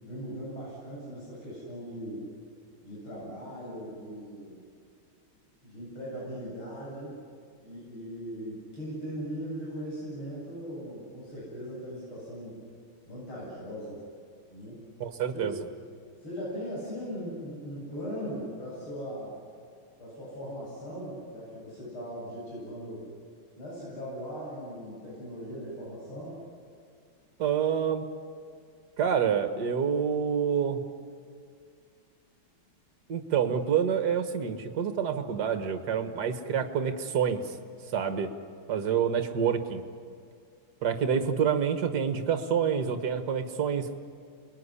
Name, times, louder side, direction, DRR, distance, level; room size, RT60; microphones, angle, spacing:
voice 1, 0.0-2.2 2.8-4.6 5.6-7.2 7.6-12.6 13.1-14.0 14.5-14.8 15.3-15.5 16.2-19.4 20.0-23.1 23.6-26.4, equal, 85° left, -6 dB, 9.1 m, -39 dB
voice 2, 15.0-15.5 27.4-28.1 29.0-30.8 33.1-37.5 37.9-38.3 38.7-39.8 40.8-44.0, right 7 dB, 55° right, 8 dB, 2.1 m, -27 dB
28.5 x 21.5 x 9.9 m, 2.3 s
omnidirectional pair, 2.3 m